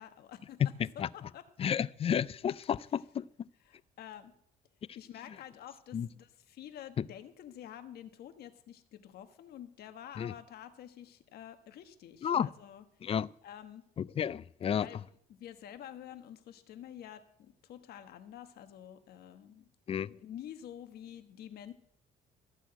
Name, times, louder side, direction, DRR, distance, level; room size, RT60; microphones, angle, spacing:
voice 1, 0.0-1.7 3.6-4.3 4.9-12.8 13.4-13.8 14.8-15.0 15.3-19.7 20.0-21.7, left 10 dB, 70° left, 1.3 m, -49 dB
voice 2, 0.6-1.1 1.6-3.5 5.9-6.1 7.0-7.1 10.2-10.3 12.2-12.5 13.0-13.3 14.0-14.9 19.9-20.1, left 8 dB, 35° left, 0.4 m, -31 dB
14.0 x 6.3 x 8.8 m
cardioid pair, 110°, 17 cm